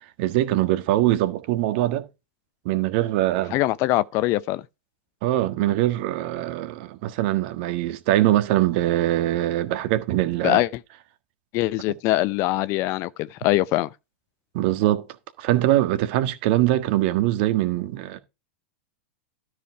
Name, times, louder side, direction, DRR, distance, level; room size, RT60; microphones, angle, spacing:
voice 1, 0.2-2.0 2.6-3.6 5.2-10.6 14.5-15.1 15.4-18.2, right 14 dB, 50° right, 1.5 m, -22 dB
voice 2, 3.5-4.6 10.4-10.7 11.5-13.9, left 17 dB, 40° left, 0.6 m, -22 dB
12.5 x 5.0 x 4.6 m
hypercardioid pair, 105°, 7 cm